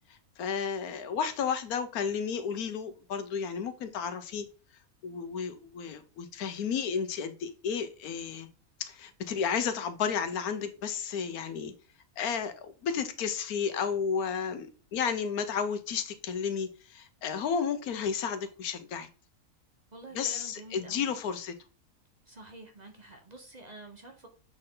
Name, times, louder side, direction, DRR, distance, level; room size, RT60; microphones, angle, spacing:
voice 1, 0.1-4.5 5.0-8.5 8.8-11.7 12.2-19.1 20.1-21.5, left 6 dB, 85° left, 1.3 m, -32 dB
voice 2, 19.9-21.1 22.3-24.3, right 2 dB, 35° right, 1.0 m, -48 dB
7.6 x 4.3 x 3.8 m
omnidirectional pair, 1.5 m